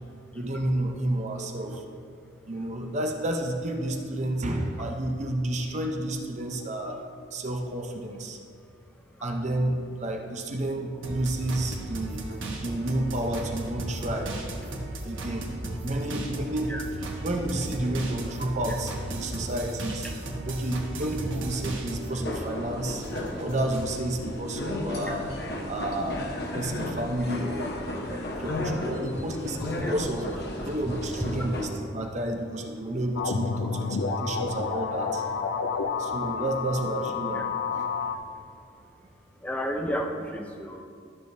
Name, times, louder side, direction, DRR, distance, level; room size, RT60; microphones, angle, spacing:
voice 1, 0.3-1.8 2.5-7.0 7.3-8.4 9.2-12.3 12.6-14.6 15.0-15.5 15.8-20.1 20.4-23.0 23.4-25.3 25.7-26.2 26.5-27.7 28.0-30.3 30.6-35.4 36.0-37.5 37.7-38.1, right 1 dB, 35° right, 3 dB, 0.7 m, -31 dB
sound 1, 11.0-22.2 22.6-23.9, right 1 dB, 80° right, 1.1 m, -35 dB
sound 2, 22.1-31.7, left 1 dB, 55° left, 1.0 m, -33 dB
sound 3, 33.2-38.2, left 5 dB, 75° left, 0.5 m, -29 dB
voice 2, 39.4-40.8, equal, 5° left, 1 dB, 0.6 m, -32 dB
13.0 x 6.4 x 2.7 m, 2.2 s
head